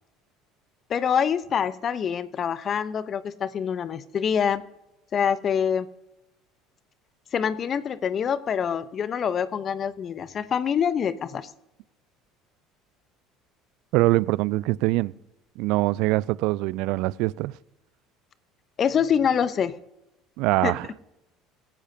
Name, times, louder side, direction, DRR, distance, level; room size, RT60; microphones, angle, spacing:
voice 1, 0.9-4.6 5.1-5.9 7.3-11.5 18.8-19.8 20.6-20.7, left 7 dB, 40° left, 0.7 m, -25 dB
voice 2, 13.9-15.1 15.6-17.5 20.4-20.9, right 20 dB, 65° right, 0.3 m, -23 dB
25.5 x 9.8 x 2.8 m
hypercardioid pair, 65°, 0 cm